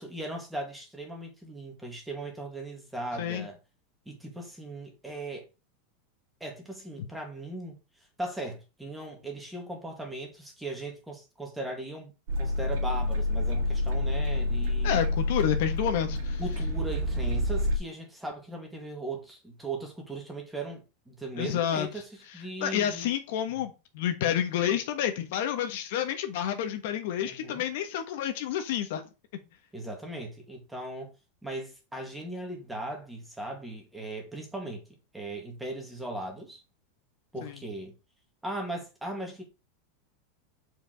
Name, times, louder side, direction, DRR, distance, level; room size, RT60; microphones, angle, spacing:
voice 1, 0.0-3.6 4.1-5.5 6.4-12.1 12.4-15.0 16.4-23.1 23.5-23.6 27.2-27.6 29.7-31.1 31.4-34.8 35.1-36.6 37.3-37.9 38.4-39.4, right 2 dB, 5° right, 2.0 m, -38 dB
sound 1, 12.3-17.8, left 2 dB, 75° right, 1.9 m, -28 dB
voice 2, 14.8-16.4 21.4-21.9 22.6-29.0 37.4-37.6, left 10 dB, 65° left, 1.2 m, -29 dB
7.0 x 4.8 x 3.9 m
supercardioid pair, 155°, 0 cm